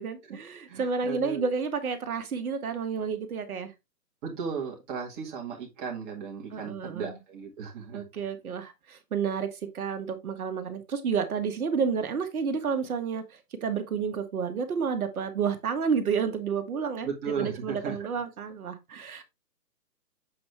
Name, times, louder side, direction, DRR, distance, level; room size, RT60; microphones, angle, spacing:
voice 1, 0.0-3.7 6.5-7.2 7.9-19.2, right 6 dB, 60° right, 1.5 m, -30 dB
voice 2, 0.7-1.5 4.2-8.1 17.0-18.1, right 6 dB, 25° right, 2.0 m, -35 dB
7.6 x 4.3 x 3.3 m
hypercardioid pair, 150°, 49 cm